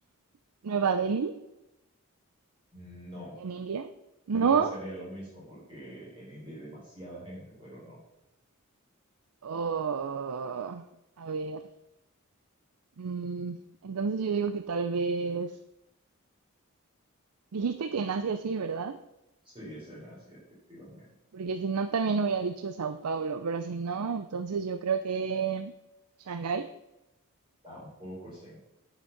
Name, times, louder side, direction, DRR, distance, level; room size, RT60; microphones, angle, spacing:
voice 1, 0.6-1.4 3.4-3.9 4.3-4.7 9.4-10.9 11.2-11.7 13.0-13.6 13.8-15.6 17.5-19.0 21.3-25.7 26.2-26.7, right 5 dB, 90° right, 10 dB, 0.5 m, -30 dB
voice 2, 2.7-3.4 4.3-8.0 19.5-20.4 20.7-21.1 27.6-28.6, equal, 25° right, -7 dB, 4.1 m, -44 dB
9.7 x 5.8 x 5.9 m, 0.92 s
head